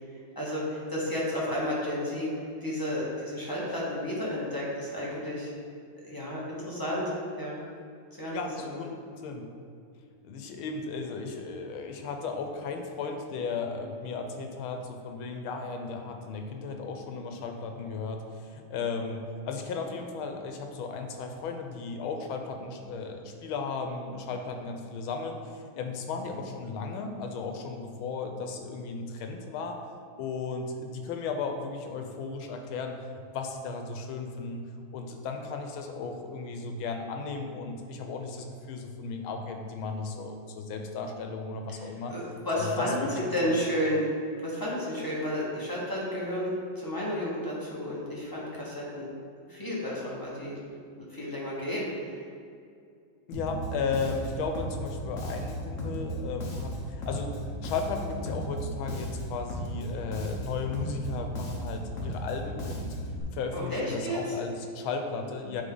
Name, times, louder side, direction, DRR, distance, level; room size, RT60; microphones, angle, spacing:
voice 1, 0.3-2.3 2.6-5.5 6.0-7.6 8.1-8.7 41.7-41.8 42.1-44.0 44.4-49.1 49.5-50.6 51.0-52.2 63.5-64.4, left 1 dB, 15° left, -6 dB, 0.7 m, -32 dB
voice 2, 8.3-9.5 10.2-29.8 30.2-33.0 33.3-34.6 34.9-42.1 42.5-43.3 53.3-57.3 57.6-62.9 63.3-65.6, left 4 dB, 90° left, 4 dB, 1.5 m, -35 dB
Bass guitar, 53.3-63.2, equal, 50° left, 1.1 m, -35 dB
9.1 x 3.5 x 3.8 m, 2.4 s
omnidirectional pair, 2.2 m